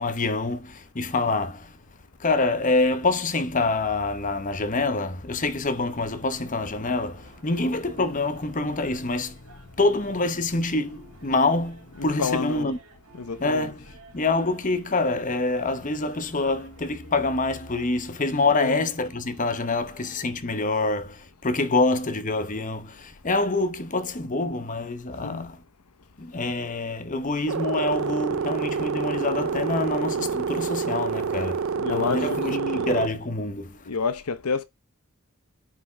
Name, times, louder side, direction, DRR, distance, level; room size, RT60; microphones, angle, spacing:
voice 1, 0.0-1.8 2.2-12.8 13.4-25.6 26.2-33.9, left 3 dB, 35° left, 0.9 m, -26 dB
sound 1, 6.0-20.4, right 2 dB, 90° right, 3.7 m, -54 dB
voice 2, 11.9-12.7 13.1-13.7 18.5-18.8 25.2-25.5 31.7-32.9 33.9-34.6, left 5 dB, 85° left, 0.8 m, -30 dB
sound 2, 27.5-33.1, right 6 dB, 65° right, 0.5 m, -28 dB
9.8 x 5.1 x 3.3 m
head